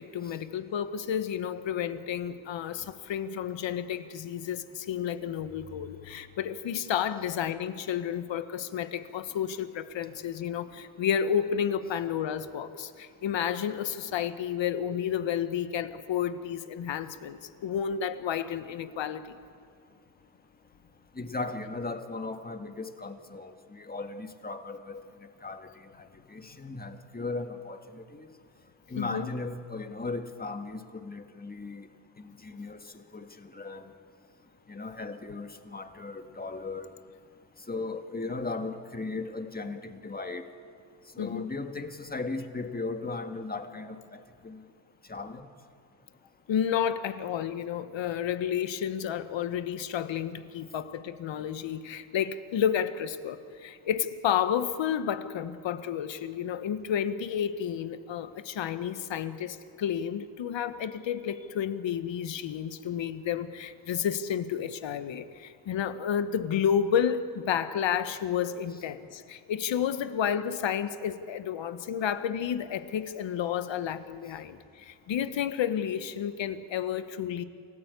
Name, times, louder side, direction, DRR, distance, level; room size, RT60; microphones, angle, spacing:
voice 1, 0.0-19.4 29.0-29.3 41.2-41.5 46.5-77.4, left 8 dB, 65° left, 11 dB, 1.4 m, -31 dB
voice 2, 21.2-25.0 25.4-25.9 26.3-28.3 28.9-31.9 32.2-32.8 33.1-33.9 34.7-36.9 37.7-40.4 41.2-44.6 45.1-45.5, left 3 dB, 20° left, 7 dB, 1.9 m, -37 dB
28.5 x 14.5 x 8.4 m, 2.4 s
cardioid pair, 80°, 48 cm